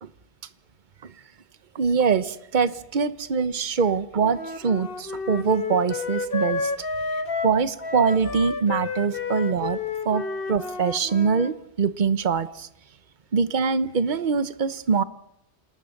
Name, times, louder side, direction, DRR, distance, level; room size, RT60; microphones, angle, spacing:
voice 1, 1.7-6.7 7.4-9.8 10.0-10.2 10.5-12.7 13.3-15.0, right 5 dB, 45° right, 14 dB, 1.1 m, -23 dB
Wind instrument woodwind instrument, 4.2-11.5, left 4 dB, 55° left, 1.5 m, -30 dB
28.0 x 19.5 x 6.6 m, 0.83 s
omnidirectional pair, 1.1 m